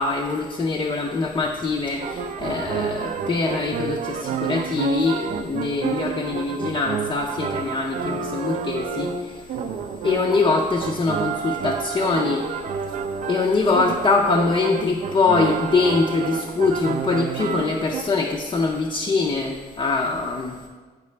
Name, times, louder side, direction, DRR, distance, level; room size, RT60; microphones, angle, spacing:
voice 1, 0.0-9.4 10.0-12.6 13.3-20.6, left 3 dB, 30° left, -1 dB, 0.5 m, -23 dB
sound 1, 2.0-18.0, right 6 dB, 50° right, 0.4 m, -29 dB
8.1 x 4.8 x 3.2 m, 1.4 s
cardioid pair, 125°, 17 cm